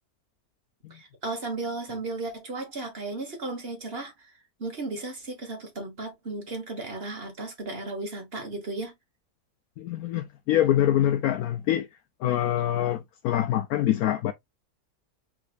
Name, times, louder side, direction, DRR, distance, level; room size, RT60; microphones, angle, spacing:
voice 1, 0.9-4.3 4.6-8.9, right 3 dB, 45° right, 1.7 m, -35 dB
voice 2, 9.8-11.9 12.2-14.3, left 12 dB, 80° left, 1.0 m, -25 dB
4.9 x 4.0 x 2.4 m
omnidirectional pair, 1.5 m